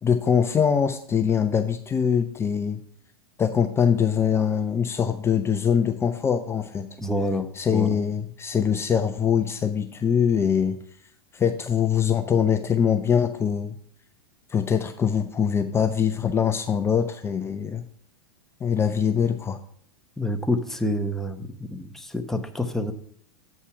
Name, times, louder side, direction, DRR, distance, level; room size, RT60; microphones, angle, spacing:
voice 1, 0.0-2.8 3.4-6.9 7.6-10.8 11.3-13.7 14.5-17.8 18.6-19.6, left 7 dB, 20° left, 8 dB, 0.6 m, -23 dB
voice 2, 7.0-8.0 20.2-22.9, left 1 dB, 5° left, 6 dB, 0.9 m, -28 dB
8.3 x 5.6 x 4.6 m, 0.63 s
hypercardioid pair, 95°, 13 cm